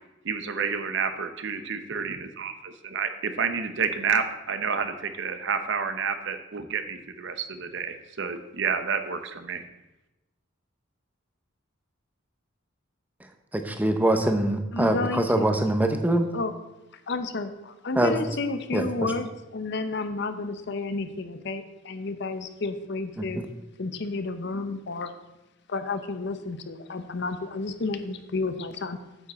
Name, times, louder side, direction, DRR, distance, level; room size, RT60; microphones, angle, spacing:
voice 1, 0.2-9.6, right 6 dB, 60° right, 9 dB, 0.7 m, -29 dB
voice 2, 13.5-16.3 18.0-18.2 18.7-18.9 23.4-23.5, right 1 dB, 10° right, 6 dB, 0.7 m, -23 dB
voice 3, 14.7-15.5 16.3-16.5 17.1-23.4 23.8-25.1 25.7-29.0, left 3 dB, 55° left, 10 dB, 0.7 m, -31 dB
8.7 x 7.5 x 4.1 m, 1.0 s
head